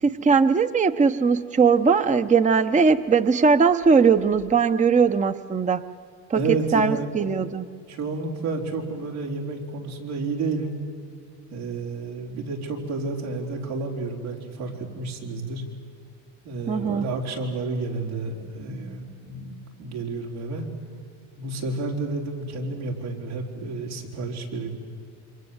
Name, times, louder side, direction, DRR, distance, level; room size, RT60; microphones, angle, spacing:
voice 1, 0.0-5.8 6.3-7.7 16.7-17.1, right 5 dB, 15° right, 11 dB, 0.8 m, -20 dB
voice 2, 6.3-7.1 7.9-10.7 11.5-15.6 16.4-20.6 21.4-24.7, right 3 dB, 85° right, -1 dB, 4.8 m, -30 dB
27.5 x 24.5 x 8.1 m, 2.1 s
supercardioid pair, 95°, 44 cm